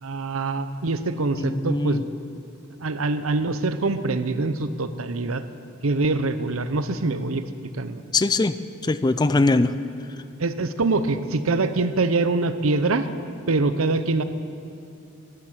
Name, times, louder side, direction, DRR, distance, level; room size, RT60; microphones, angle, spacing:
voice 1, 0.0-2.0 2.8-5.4 5.8-7.4 7.8-8.0 10.4-13.1 13.5-14.2, right 3 dB, 80° right, 11 dB, 0.8 m, -24 dB
voice 2, 1.4-2.0 8.1-9.7, left 3 dB, 20° left, 13 dB, 0.4 m, -22 dB
15.5 x 10.5 x 7.4 m, 2.6 s
head